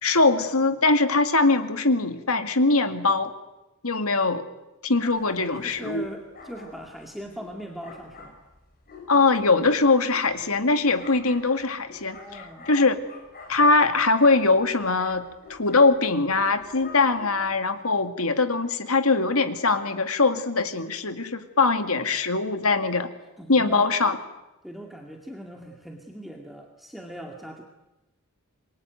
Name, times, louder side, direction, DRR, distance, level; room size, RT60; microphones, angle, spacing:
voice 1, 0.0-3.3 3.8-4.5 4.8-6.1 9.1-12.2 12.7-13.0 13.5-23.1 23.5-24.2, left 3 dB, 75° left, 8 dB, 2.2 m, -22 dB
sound 1, 5.0-17.6, left 3 dB, 45° left, 6.4 m, -47 dB
voice 2, 5.4-8.4 12.1-12.7 23.4-23.9 24.6-27.6, equal, ahead, 1 dB, 2.2 m, -40 dB
26.5 x 23.0 x 9.4 m, 1.0 s
head